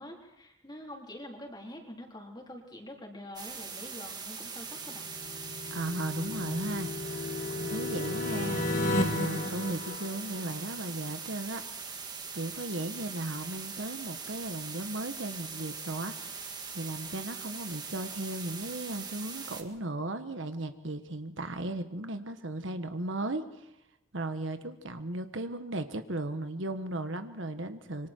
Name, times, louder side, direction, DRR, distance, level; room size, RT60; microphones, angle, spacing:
voice 1, 0.0-5.1, left 1 dB, 20° left, 0 dB, 3.8 m, -45 dB
sound 1, 3.4-19.6, right 5 dB, 20° right, 1.9 m, -41 dB
sound 2, 4.9-10.7, left 2 dB, 40° left, 2.1 m, -33 dB
voice 2, 5.7-11.6 11.9-23.7 24.1-28.1, right 2 dB, 65° right, 9 dB, 1.3 m, -36 dB
26.5 x 24.5 x 4.5 m, 0.82 s
head